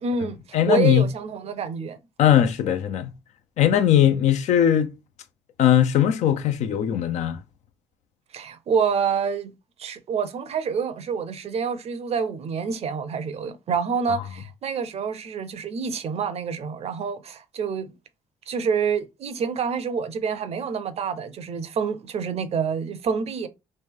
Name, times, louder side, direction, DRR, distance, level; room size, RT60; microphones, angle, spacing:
voice 1, 0.0-2.0 8.3-9.5 9.8-17.9 18.5-23.5, right 6 dB, 55° right, 0.6 m, -27 dB
voice 2, 0.5-1.1 2.2-3.1 3.6-4.9 5.6-7.4, left 10 dB, 70° left, 0.6 m, -19 dB
3.1 x 2.7 x 3.5 m
supercardioid pair, 55°, 12 cm